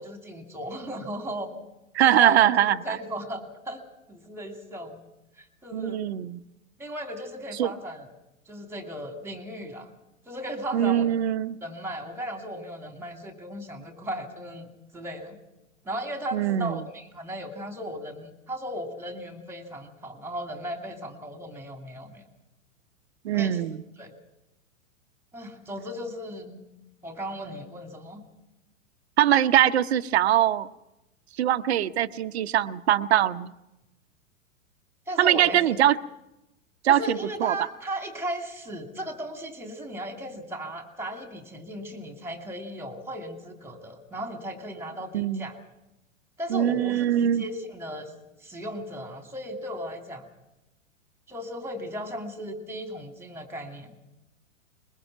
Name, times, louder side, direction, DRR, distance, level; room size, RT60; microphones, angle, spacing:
voice 1, 0.0-1.5 2.0-2.4 2.8-3.8 4.1-5.0 5.4-6.1 6.8-8.1 8.5-9.9 10.3-11.1 11.6-14.7 14.9-15.4 15.8-22.2 23.3-23.6 24.0-24.1 25.3-26.6 27.0-28.2 35.1-35.8 36.9-45.6 46.4-48.1 48.4-50.3 51.3-53.9, equal, 5° right, 6 dB, 2.6 m, -36 dB
voice 2, 1.9-3.0 5.7-6.4 7.6-7.7 10.7-11.6 16.3-16.8 23.2-23.8 29.2-30.7 31.4-33.5 35.2-36.0 36.8-37.5 45.1-45.5 46.5-47.4, right 11 dB, 50° right, 14 dB, 0.8 m, -22 dB
21.5 x 21.5 x 5.9 m, 0.94 s
figure-of-eight pair, 105°, 41 cm